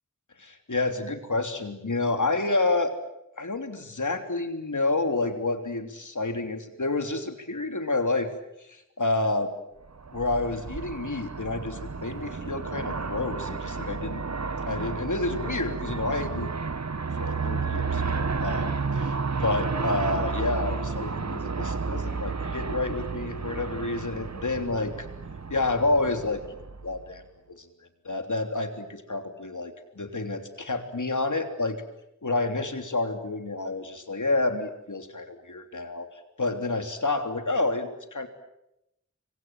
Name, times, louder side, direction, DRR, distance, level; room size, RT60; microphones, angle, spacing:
voice 1, 0.4-2.9 3.4-8.3 8.7-9.5 10.1-14.2 14.7-16.5 17.2-24.9 25.5-26.4 26.8-27.2 27.5-27.7 28.0-31.8 32.2-36.1 36.4-38.3, left 2 dB, 85° left, 6 dB, 3.3 m, -29 dB
Aircraft, 9.9-27.2, right 4 dB, 65° right, 1.1 m, -32 dB
27.0 x 23.5 x 9.1 m, 0.84 s
wide cardioid pair, 50°, 30 cm